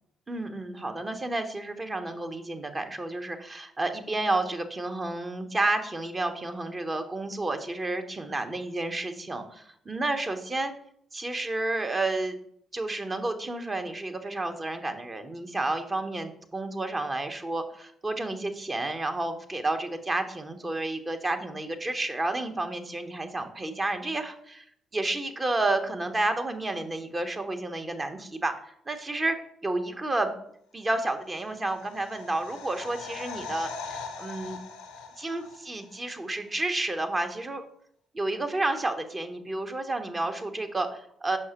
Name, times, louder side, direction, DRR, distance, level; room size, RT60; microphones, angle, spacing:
voice 1, 0.3-10.7 11.1-12.4 12.7-24.6 24.9-29.4 29.6-30.3 30.7-34.6 35.2-37.6 38.1-41.4, right 2 dB, 30° right, 6 dB, 1.0 m, -31 dB
sound 1, 31.2-36.1 36.3-36.4, left 4 dB, 75° left, 0.6 m, -41 dB
6.2 x 5.5 x 3.0 m, 0.68 s
hypercardioid pair, 45°, 0 cm